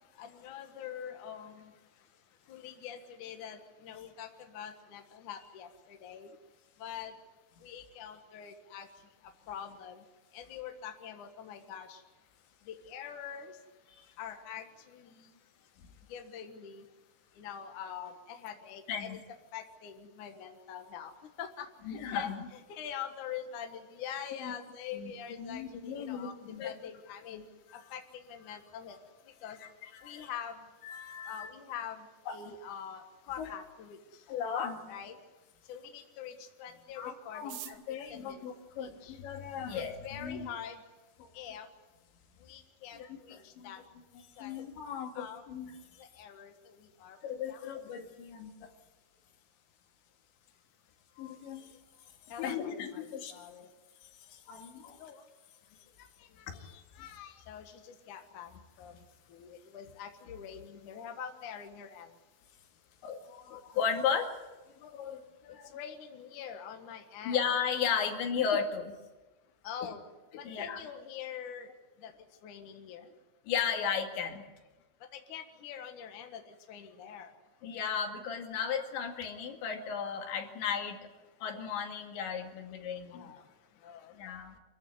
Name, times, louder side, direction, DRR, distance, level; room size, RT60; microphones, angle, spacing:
voice 1, 0.2-1.7 2.5-6.3 6.8-7.1 7.6-8.9 9.5-10.0 10.3-12.0 12.7-13.6 14.2-15.3 16.1-16.9 17.4-19.2 19.5-21.1 21.4-26.3 26.6-27.4 27.9-29.0 29.4-29.6 30.0-30.7 31.3-34.2 34.9-35.2 35.7-37.6 38.1-38.4 38.8-39.2 39.7-40.8 41.3-41.7 42.4-43.8 44.4-44.6 45.1-45.4 46.0-47.2 47.5-48.0 52.3-53.7 55.0-55.2 56.2-58.5 58.8-59.0 59.3-62.1 65.7-67.4 69.6-70.0 70.4-71.7 72.0-72.1 72.4-73.1 75.1-77.3 83.1-83.4 83.8-84.4, left 8 dB, 60° left, 4 dB, 2.4 m, -45 dB
voice 2, 18.9-19.2 21.8-22.5 24.4-24.5 24.9-25.1 25.4-26.7 27.3-27.9 28.4-28.5 28.9-29.0 29.6-30.3 30.8-31.5 32.3-32.4 33.4-33.5 34.3-34.9 37.0-40.5 41.2-41.3 42.9-43.7 44.1-46.0 47.2-48.7 51.2-51.8 52.4-53.3 54.0-55.0 56.5-56.6 63.0-64.4 64.8-65.7 67.2-69.0 70.4-70.8 73.5-74.5 77.6-81.0 81.4-83.3 84.1-84.5, left 7 dB, 80° left, 4 dB, 4.4 m, -36 dB
sound 1, 37.3-39.6 40.4-40.5 40.7-40.8 41.0-41.5 41.9-42.0 42.1-42.6 42.9-43.1 43.4-43.7, right 12 dB, 70° right, 2.3 m, -49 dB
26.5 x 14.5 x 9.5 m, 1.2 s
omnidirectional pair, 5.2 m